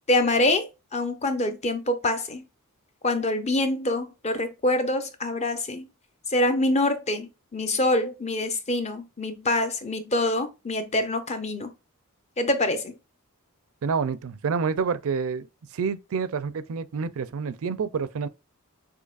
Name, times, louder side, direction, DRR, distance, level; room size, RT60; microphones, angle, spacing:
voice 1, 0.1-2.4 3.0-5.9 6.3-11.7 12.4-12.9, left 1 dB, 30° left, 0.7 m, -25 dB
voice 2, 13.8-15.5 15.7-18.3, right 5 dB, 65° right, 0.4 m, -28 dB
6.4 x 2.8 x 2.4 m
head